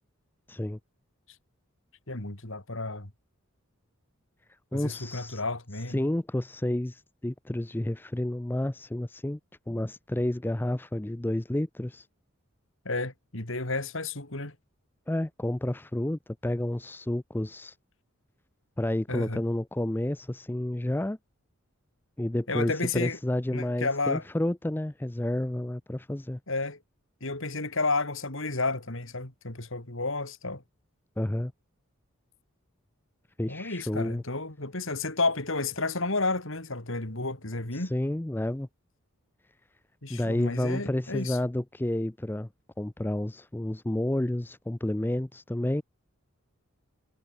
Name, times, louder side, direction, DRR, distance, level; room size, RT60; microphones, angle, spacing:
voice 1, 0.5-0.8 4.7-5.4 5.9-9.4 9.7-12.1 15.1-17.7 18.8-21.2 22.2-26.4 31.2-31.5 33.4-34.2 37.7-38.7 40.1-42.5 42.8-45.8, left 1 dB, 10° left, 0.4 m, -30 dB
voice 2, 2.1-3.1 4.7-6.0 12.8-14.5 19.1-19.4 22.5-23.2 23.5-24.2 26.5-26.8 27.2-30.6 33.5-37.9 40.0-41.4, left 3 dB, 60° left, 3.3 m, -31 dB
head